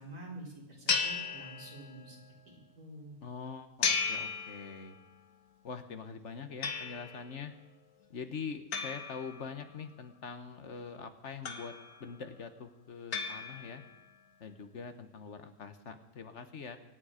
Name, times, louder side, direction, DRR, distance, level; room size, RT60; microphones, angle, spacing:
voice 1, 0.0-2.2 2.4-3.2, right 1 dB, 90° right, -3 dB, 4.6 m, -48 dB
sound 1, 0.9-2.1 3.8-5.1 6.6-7.3 8.7-9.9 11.5-12.2 13.1-14.0, left 5 dB, 80° left, 1.7 m, -35 dB
voice 2, 3.2-5.0 5.6-7.5 8.1-11.7 12.0-13.8 14.4-16.8, left 5 dB, 55° left, 9 dB, 1.3 m, -44 dB
25.5 x 9.2 x 5.0 m, 0.95 s
omnidirectional pair, 1.6 m